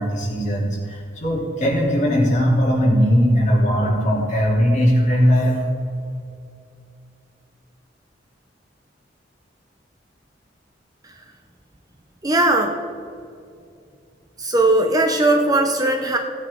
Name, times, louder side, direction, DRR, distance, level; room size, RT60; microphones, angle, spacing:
voice 1, 0.0-5.6, equal, 40° left, -5 dB, 3.2 m, -19 dB
voice 2, 12.2-12.8 14.4-16.2, right 2 dB, 20° right, 4 dB, 0.7 m, -18 dB
16.5 x 8.7 x 3.7 m, 2.5 s
head